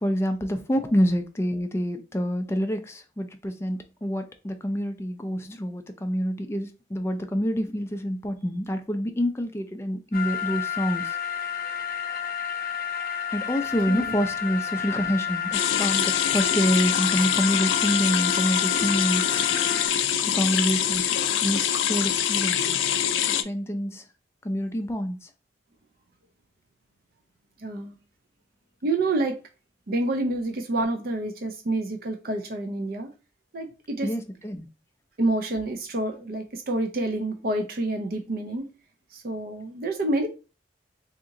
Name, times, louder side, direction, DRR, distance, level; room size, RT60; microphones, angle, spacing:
voice 1, 0.0-11.2 13.3-19.2 20.3-21.1 21.4-22.8 23.3-24.0 24.4-25.3 34.0-34.7, equal, 15° left, 0.4 m, -27 dB
sound 1, 10.1-19.9, left 8 dB, 50° left, 0.7 m, -30 dB
sound 2, 15.5-23.4, left 9 dB, 85° left, 0.3 m, -24 dB
voice 2, 27.6-28.0 28.8-29.4 29.9-33.1 33.5-34.1 35.2-38.7 39.1-40.3, right 2 dB, 50° right, 0.5 m, -28 dB
2.8 x 2.7 x 3.7 m
head